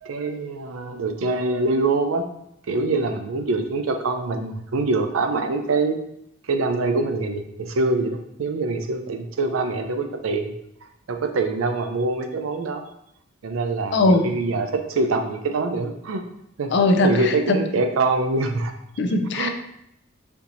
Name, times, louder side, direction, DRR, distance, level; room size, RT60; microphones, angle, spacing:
voice 1, 0.0-2.2 2.7-6.0 6.5-10.5 11.1-12.8 13.4-16.2 16.6-18.7 19.3-19.5, right 3 dB, 90° right, 6 dB, 0.5 m, -24 dB
voice 2, 13.9-14.3 16.7-17.6 19.0-19.5, left 2 dB, 60° left, 6 dB, 0.4 m, -19 dB
4.4 x 2.8 x 2.6 m, 0.77 s
head